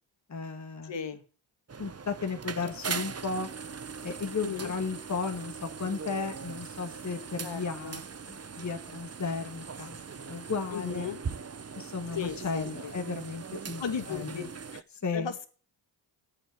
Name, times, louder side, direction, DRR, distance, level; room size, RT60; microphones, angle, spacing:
voice 1, 0.3-0.9 1.8-3.5 4.0-8.0 8.3-11.1 11.8-13.8 14.1-14.5 15.0-15.3, left 4 dB, 35° left, 5 dB, 1.9 m, -34 dB
voice 2, 0.8-1.2 2.6-2.7 4.4-4.7 7.4-8.0 10.7-11.2 12.1-12.9 13.8-14.8 15.1-15.5, left 7 dB, 60° left, 10 dB, 2.0 m, -36 dB
sound 1, 1.7-14.8, right 5 dB, 30° right, 1.0 m, -40 dB
8.9 x 7.9 x 9.0 m, 0.37 s
cardioid pair, 60°, 49 cm